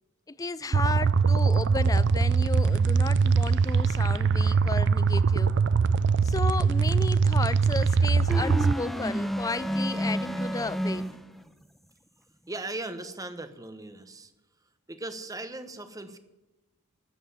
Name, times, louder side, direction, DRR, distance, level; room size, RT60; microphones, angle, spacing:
voice 1, 0.3-5.5 6.2-11.1, left 3 dB, 15° left, 0.4 m, -33 dB
sound 1, 0.7-8.7, right 5 dB, 55° right, 0.4 m, -22 dB
sound 2, 8.3-11.4, equal, ahead, 0.8 m, -30 dB
voice 2, 12.5-14.3 14.9-16.2, right 2 dB, 15° right, 1.1 m, -38 dB
11.5 x 9.2 x 10.0 m
head